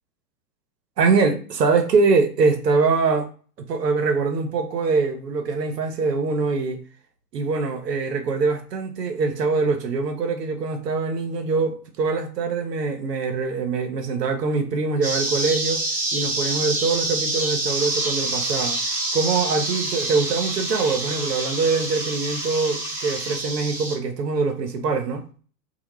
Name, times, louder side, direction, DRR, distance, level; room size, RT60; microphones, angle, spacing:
voice 1, 1.0-3.3 3.7-6.8 7.3-15.9 16.1-25.2, right 4 dB, 80° right, 0.7 m, -23 dB
sound 1, 15.0-24.0, right 2 dB, 20° right, 0.6 m, -27 dB
sound 2, 17.7-23.4, left 3 dB, 20° left, 0.3 m, -39 dB
2.2 x 2.0 x 3.0 m
figure-of-eight pair, 95°, 48 cm